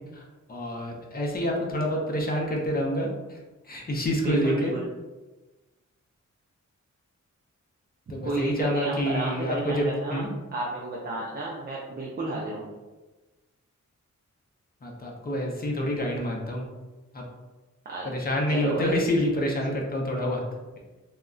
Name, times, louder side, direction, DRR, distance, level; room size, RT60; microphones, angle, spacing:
voice 1, 0.5-3.4 3.7-4.7 8.1-10.3 14.8-16.7 17.1-17.2 18.0-20.4, equal, 30° left, -1 dB, 0.5 m, -27 dB
voice 2, 4.2-4.8 8.2-10.2 10.5-12.7 17.9-18.1 18.5-18.9, right 2 dB, 35° right, -4 dB, 0.4 m, -32 dB
2.3 x 2.1 x 3.6 m, 1.2 s
wide cardioid pair, 165°, 30 cm